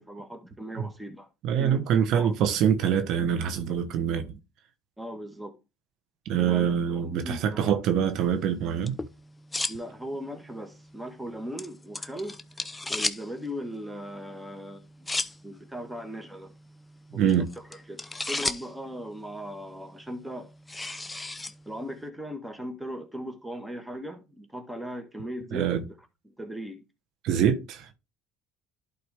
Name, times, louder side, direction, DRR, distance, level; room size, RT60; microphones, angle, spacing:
voice 1, 0.0-1.3 1.6-1.9 2.1-2.5 5.0-5.6 6.4-7.7 9.7-12.4 12.9-15.1 15.4-16.5 17.1-20.5 21.6-25.7 26.2-26.8, equal, 5° right, 1.6 m, -38 dB
voice 2, 1.4-4.4 6.2-9.0 17.1-17.5 25.5-25.8 27.2-27.9, right 8 dB, 65° right, 1.1 m, -25 dB
sound 1, 8.1-22.1, left 2 dB, 15° left, 0.6 m, -38 dB
11.5 x 4.3 x 3.5 m
supercardioid pair, 85°, 0 cm